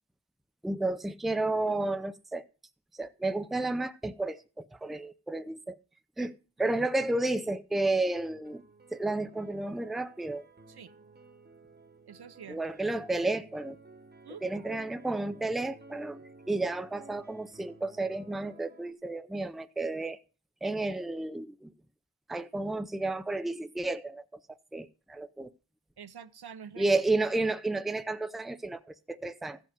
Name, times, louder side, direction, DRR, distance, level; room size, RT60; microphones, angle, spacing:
voice 1, 0.6-2.4 2.9-5.8 6.2-8.6 8.9-10.4 12.5-13.8 14.4-16.2 16.5-20.2 20.6-21.7 22.3-25.5 26.8-29.6, right 2 dB, ahead, 0.5 m, -32 dB
sound 1, 8.2-18.9, right 3 dB, 25° right, 1.1 m, -55 dB
voice 2, 12.1-12.6 14.2-14.8 26.0-27.0, right 7 dB, 75° right, 0.8 m, -47 dB
15.0 x 5.4 x 5.1 m
wide cardioid pair, 95°, 39 cm